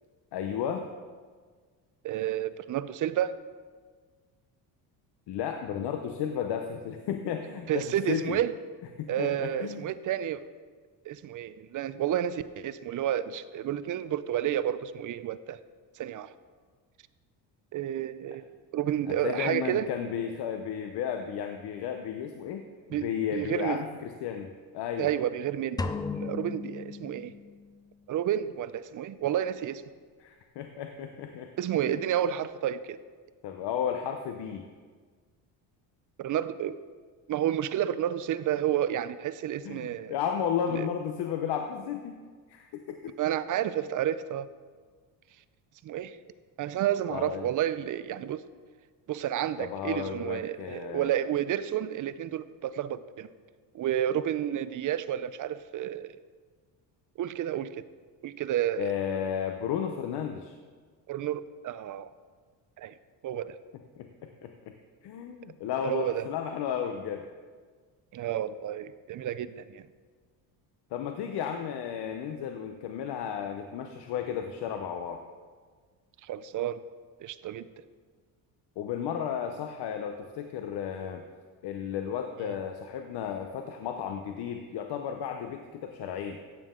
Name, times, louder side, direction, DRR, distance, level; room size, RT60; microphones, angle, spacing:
voice 1, 0.3-0.9 5.3-8.4 9.0-9.9 19.1-25.1 30.2-31.5 31.8-32.1 33.4-34.7 39.6-42.2 42.5-43.2 47.1-47.5 49.6-51.1 58.8-60.5 64.0-64.5 65.0-67.3 70.9-75.2 78.8-81.2 81.6-86.4, left 8 dB, 65° left, 5 dB, 0.9 m, -33 dB
voice 2, 2.0-3.4 7.7-8.5 9.1-10.5 11.1-15.6 16.0-16.3 17.7-18.4 18.7-19.9 22.9-23.8 25.0-25.8 26.2-27.3 28.1-29.8 31.6-33.0 36.2-36.8 37.3-40.1 40.7-40.9 43.2-44.5 45.8-46.2 46.6-48.4 49.1-53.3 53.7-56.2 57.2-57.8 58.2-59.0 61.1-62.1 62.8-62.9 63.2-63.6 65.8-66.3 68.1-69.9 76.2-76.8 77.2-77.7 82.4-82.5, right 11 dB, 45° right, 14 dB, 0.6 m, -30 dB
sound 1, 25.8-27.8, left 4 dB, 10° left, 0.3 m, -35 dB
14.5 x 9.4 x 3.7 m, 1.6 s
cardioid pair, 120°, 43 cm